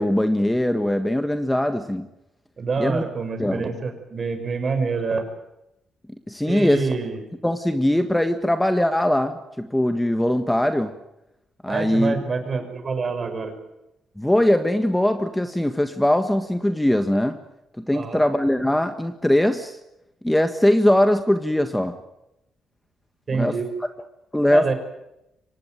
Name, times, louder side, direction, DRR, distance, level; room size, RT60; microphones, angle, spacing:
voice 1, 0.0-2.1 2.8-3.0 3.4-3.6 6.3-6.9 7.4-10.9 11.6-12.1 14.2-17.4 17.9-19.8 20.2-22.0 23.3-23.5 24.3-24.7, left 1 dB, 5° left, 8 dB, 1.6 m, -21 dB
voice 2, 2.6-5.3 6.4-7.2 11.7-13.6 17.9-18.2 23.3-23.7 24.5-24.7, right 4 dB, 40° right, 8 dB, 5.6 m, -26 dB
24.5 x 18.5 x 9.3 m, 0.88 s
cardioid pair, 90°, 0 cm